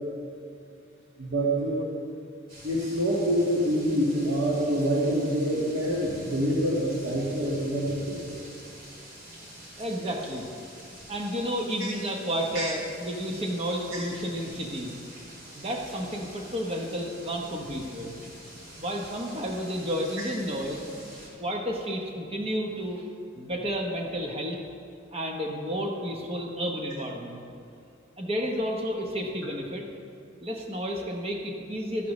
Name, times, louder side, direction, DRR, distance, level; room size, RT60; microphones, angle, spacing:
voice 1, 1.2-1.8 2.6-8.4 12.5-12.6, equal, 75° right, -5 dB, 1.7 m, -26 dB
sound 1, 2.5-21.3, equal, 50° right, 2.7 m, -46 dB
voice 2, 9.8-10.5 11.1-14.9 15.5-18.2 18.8-20.8 21.4-23.0 23.4-24.6 25.1-27.4 28.2-29.8 30.4-32.1, equal, 30° right, 1 dB, 0.9 m, -31 dB
13.5 x 11.0 x 3.1 m, 2.5 s
head